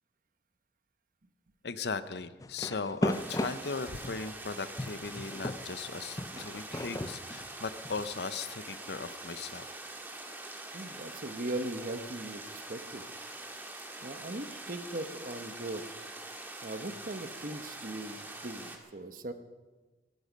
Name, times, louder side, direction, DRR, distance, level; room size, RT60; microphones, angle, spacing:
voice 1, 1.6-9.7 10.3-10.4, left 4 dB, 65° left, 13 dB, 0.7 m, -38 dB
sound 1, 2.4-4.3 4.8-8.1, left 1 dB, 20° left, 0.5 m, -36 dB
sound 2, 3.1-18.8, right 2 dB, 10° right, 1.8 m, -44 dB
voice 2, 6.3-6.9 10.7-13.0 14.0-15.8 16.6-19.3, right 2 dB, 50° right, 9 dB, 1.1 m, -39 dB
23.0 x 12.0 x 5.2 m, 1.3 s
head